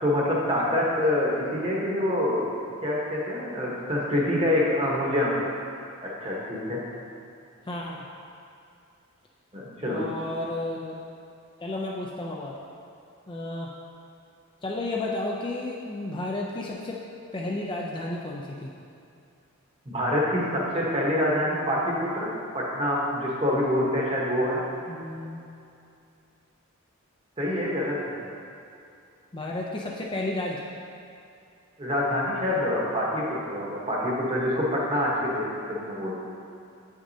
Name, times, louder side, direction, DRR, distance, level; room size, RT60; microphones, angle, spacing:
voice 1, 0.0-2.4 2.8-5.5 6.0-6.8 9.5-10.0 19.9-24.6 27.4-28.2 31.8-36.2, left 1 dB, 25° right, -4 dB, 1.1 m, -26 dB
voice 2, 7.7-8.1 9.9-11.0 11.6-12.6 13.3-13.7 14.6-17.0 17.3-18.7 24.9-25.5 29.3-30.7, left 2 dB, 20° left, -2 dB, 0.4 m, -32 dB
8.5 x 6.0 x 2.7 m, 2.6 s
head